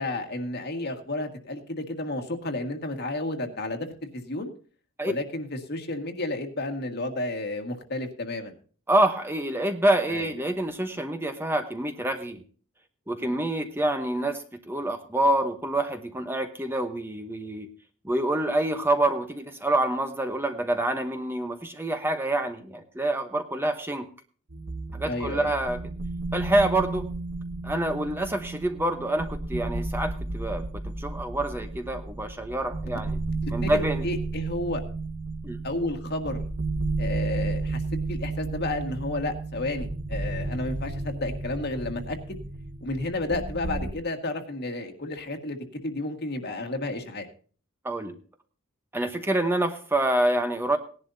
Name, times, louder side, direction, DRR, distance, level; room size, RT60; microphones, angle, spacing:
voice 1, 0.0-4.5 5.0-8.5 10.1-10.3 13.2-13.3 25.1-25.5 33.4-34.8 35.6-36.4 37.0-37.8 38.1-42.4 42.8-45.6 45.8-47.3, left 2 dB, 50° left, 5 dB, 1.7 m, -32 dB
voice 2, 8.9-12.4 13.1-17.7 18.0-24.1 24.9-25.8 26.3-27.1 27.6-33.2 33.5-34.0 35.4-35.6 47.8-48.2 48.9-50.8, right 1 dB, 10° right, 6 dB, 0.9 m, -27 dB
sound 1, 24.5-43.9, right 3 dB, 65° right, 1.6 m, -33 dB
18.5 x 11.0 x 2.7 m, 0.40 s
head